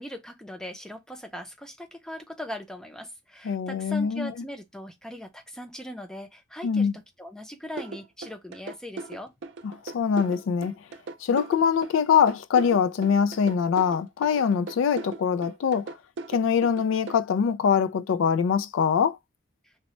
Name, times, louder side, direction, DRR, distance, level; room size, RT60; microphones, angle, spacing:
voice 1, 0.0-9.3 19.6-19.7, left 1 dB, 5° left, 0.5 m, -40 dB
voice 2, 3.4-4.3 6.6-7.0 9.9-10.7 11.2-15.9 16.3-19.2, left 7 dB, 90° left, 0.3 m, -23 dB
sound 1, 7.8-17.2, right 3 dB, 65° right, 0.4 m, -38 dB
2.8 x 2.1 x 3.0 m
head